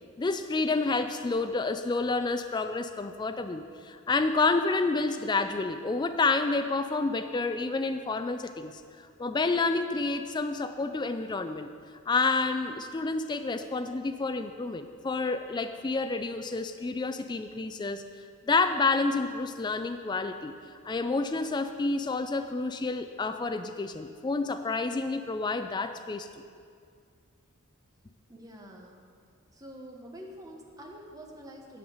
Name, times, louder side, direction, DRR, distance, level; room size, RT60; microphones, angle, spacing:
voice 1, 0.2-11.7 12.1-18.0 18.4-20.5 20.8-26.3, left 3 dB, 20° left, 8 dB, 0.3 m, -29 dB
voice 2, 28.3-29.0 29.5-31.8, equal, 15° right, 0 dB, 1.1 m, -46 dB
10.5 x 5.4 x 7.9 m, 2.2 s
head